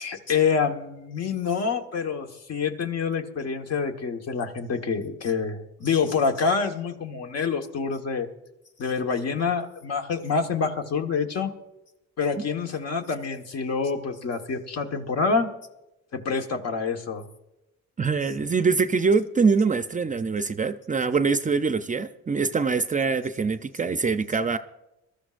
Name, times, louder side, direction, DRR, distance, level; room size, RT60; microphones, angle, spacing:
voice 1, 0.0-8.3 8.8-11.5 12.2-15.5 16.1-17.2, left 5 dB, 55° left, 1.4 m, -27 dB
voice 2, 18.0-24.6, right 4 dB, 25° right, 0.5 m, -24 dB
21.5 x 13.5 x 2.5 m
cardioid pair, 90°, 30 cm